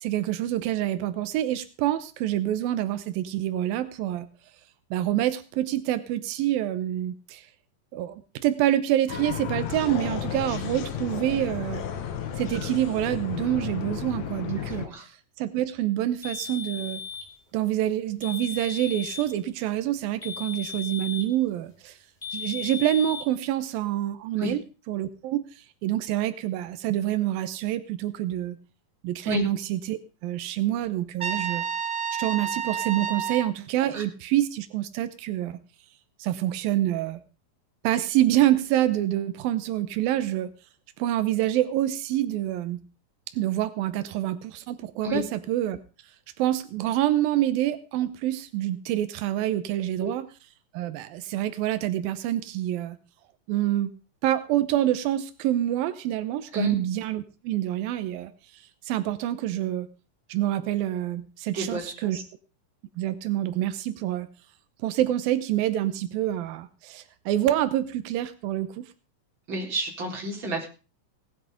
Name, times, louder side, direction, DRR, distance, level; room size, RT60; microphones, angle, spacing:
voice 1, 0.0-4.3 4.9-7.5 7.9-11.8 12.4-17.0 17.5-22.0 22.3-24.6 24.9-28.6 29.0-31.7 32.1-35.6 36.2-37.2 37.8-40.5 41.0-42.8 43.3-45.8 46.4-50.3 50.7-53.0 53.5-53.9 54.2-59.9 60.3-62.2 63.0-64.3 64.8-68.9, right 13 dB, 90° right, 12 dB, 2.7 m, -27 dB
sound 1, 9.1-14.9, left 9 dB, 60° left, 2.3 m, -33 dB
voice 2, 14.5-15.0 24.4-24.5 29.2-29.5 33.8-34.0 45.0-45.2 50.0-50.1 56.5-56.8 61.5-62.2 69.5-70.7, left 1 dB, 35° right, 0 dB, 4.8 m, -31 dB
sound 2, 16.2-17.3 18.2-19.3 20.2-21.4 22.2-23.3, left 7 dB, 10° left, 3.9 m, -36 dB
Trumpet, 31.2-33.5, right 7 dB, 55° right, 0.8 m, -30 dB
18.0 x 10.5 x 5.0 m, 0.34 s
omnidirectional pair, 4.0 m